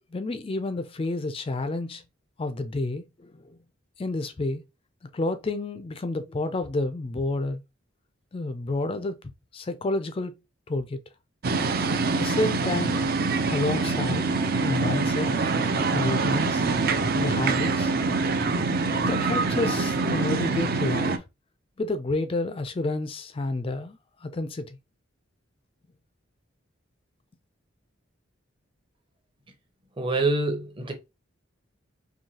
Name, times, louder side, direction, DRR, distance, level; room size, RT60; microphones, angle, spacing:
voice 1, 0.1-2.0 2.4-3.6 4.0-4.6 5.1-7.6 8.3-9.2 9.5-10.4 10.7-11.0 12.2-13.0 13.5-14.3 14.6-15.3 15.9-16.6 17.1-17.9 19.1-21.2 21.8-24.8, left 2 dB, 30° left, 0.4 m, -29 dB
sound 1, 11.4-21.2, right 3 dB, 50° right, 0.5 m, -25 dB
voice 2, 30.0-30.9, right 2 dB, 25° right, 0.8 m, -25 dB
4.6 x 2.7 x 2.8 m
head